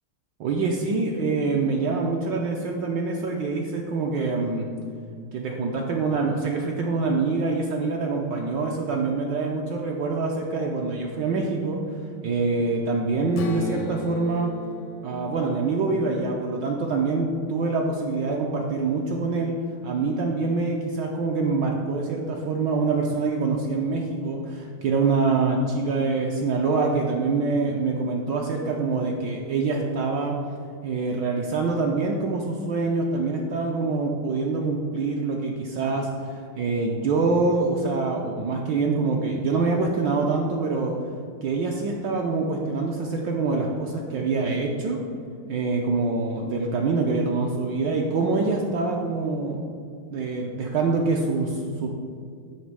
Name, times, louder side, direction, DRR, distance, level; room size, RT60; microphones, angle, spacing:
voice 1, 0.4-4.7 5.3-11.8 12.2-14.5 15.0-19.6 19.8-30.4 30.8-41.0 41.4-45.0 45.5-49.6 50.1-51.9, right 3 dB, 75° right, 0 dB, 1.1 m, -25 dB
Strum, 13.3-17.5, left 1 dB, 75° left, 1.4 m, -37 dB
7.4 x 3.2 x 6.0 m, 2.3 s
omnidirectional pair, 2.3 m